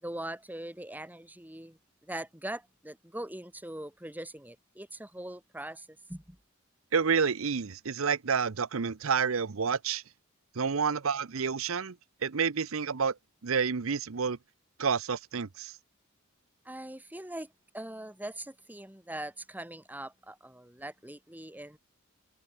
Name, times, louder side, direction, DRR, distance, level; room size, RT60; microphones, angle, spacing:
voice 1, 0.0-1.8 2.1-6.4 16.6-21.8, right 1 dB, 10° right, 3.3 m, -41 dB
voice 2, 6.9-10.0 10.5-12.0 12.2-13.1 13.4-14.4 14.8-15.7, right 6 dB, 80° right, 0.8 m, -29 dB
head